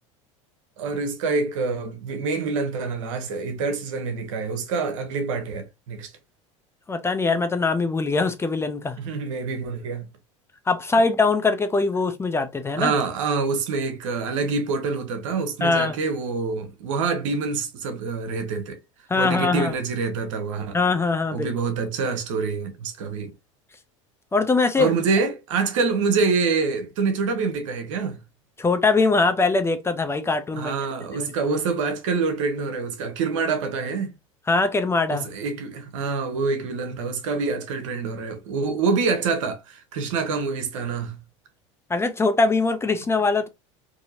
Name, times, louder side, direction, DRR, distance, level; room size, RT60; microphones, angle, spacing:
voice 1, 0.8-6.1 9.0-10.1 12.8-18.8 19.2-20.8 21.3-23.3 24.8-28.2 30.5-34.1 35.1-41.2, right 4 dB, 75° right, 0.9 m, -26 dB
voice 2, 6.9-9.0 10.7-12.9 15.6-16.0 19.1-19.7 20.7-21.5 24.3-24.9 28.6-30.7 31.1-31.3 34.5-35.3 41.9-43.5, left 3 dB, 15° left, 0.5 m, -22 dB
2.8 x 2.7 x 2.6 m
hypercardioid pair, 90°, 16 cm